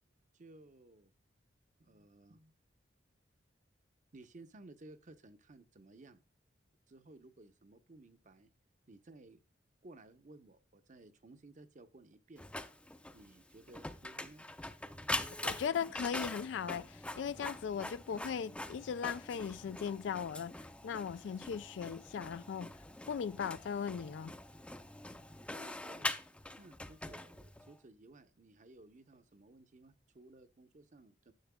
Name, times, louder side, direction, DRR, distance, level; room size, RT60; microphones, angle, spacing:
voice 1, 0.3-1.1 1.8-2.5 4.1-6.2 6.9-8.5 8.9-9.4 9.8-12.5 13.1-14.4 25.4-26.1 26.6-31.3, right 2 dB, 45° right, 0.8 m, -57 dB
Printer, 12.4-27.7, left 1 dB, 5° left, 0.5 m, -44 dB
voice 2, 15.4-20.5 20.8-22.7 23.1-24.3, left 7 dB, 75° left, 0.3 m, -38 dB
10.5 x 6.9 x 2.2 m
head